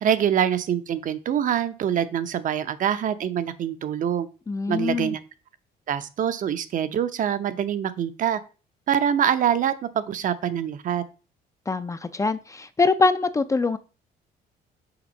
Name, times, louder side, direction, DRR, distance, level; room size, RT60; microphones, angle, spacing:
voice 1, 0.0-4.3 4.7-5.2 5.9-8.4 8.9-11.0, right 9 dB, 50° right, 11 dB, 0.7 m, -25 dB
voice 2, 4.5-5.1 11.7-13.8, left 3 dB, 20° left, 12 dB, 0.4 m, -23 dB
5.9 x 3.6 x 5.2 m, 0.34 s
cardioid pair, 110°, 17 cm